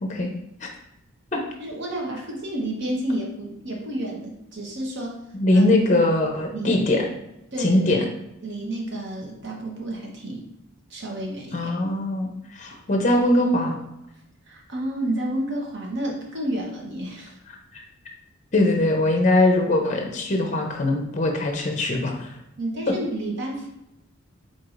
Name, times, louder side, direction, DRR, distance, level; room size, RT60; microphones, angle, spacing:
voice 1, 1.6-5.2 5.5-5.6 6.5-6.7 7.5-7.9 8.4-10.4 10.9-11.7 14.5-17.4 22.6-23.7, right 1 dB, 50° right, -1 dB, 0.9 m, -30 dB
voice 2, 5.4-7.0 7.6-8.1 11.5-13.8 17.7-17.8 18.5-22.3, left 1 dB, 35° left, 2 dB, 0.6 m, -21 dB
4.7 x 4.0 x 2.5 m, 0.87 s
head